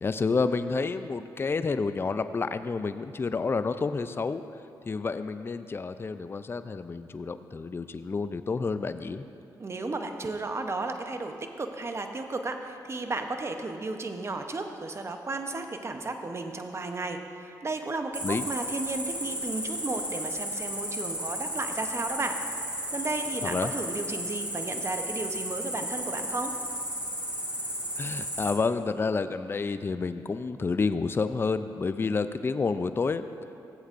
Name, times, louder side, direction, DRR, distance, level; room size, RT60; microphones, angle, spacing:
voice 1, 0.0-9.3 18.2-18.5 23.4-23.7 28.0-33.2, left 4 dB, 30° left, 11 dB, 0.4 m, -29 dB
voice 2, 9.6-22.4 22.9-26.5, right 3 dB, 35° right, 6 dB, 0.8 m, -34 dB
Cricket, 18.1-28.5, equal, 15° right, 1.8 m, -34 dB
14.5 x 7.9 x 2.5 m, 2.7 s
cardioid pair, 60°, 8 cm